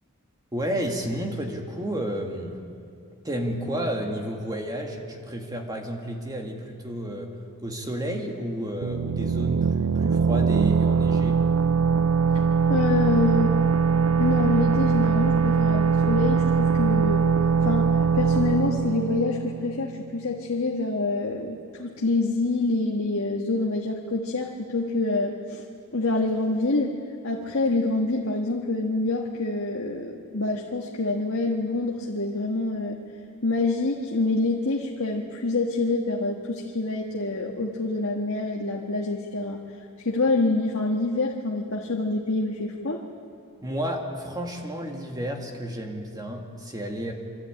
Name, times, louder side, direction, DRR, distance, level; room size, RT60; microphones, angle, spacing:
voice 1, 0.5-2.6 3.2-7.3 7.6-11.4 43.6-47.1, equal, 20° right, 2 dB, 2.0 m, -31 dB
sound 1, 8.8-20.3, right 5 dB, 75° right, 0.5 m, -22 dB
voice 2, 12.7-13.6 14.2-17.2 17.6-25.6 25.9-33.0 33.4-39.6 40.0-43.0, left 2 dB, 70° left, -1 dB, 1.6 m, -26 dB
26.0 x 13.0 x 8.9 m, 2.4 s
head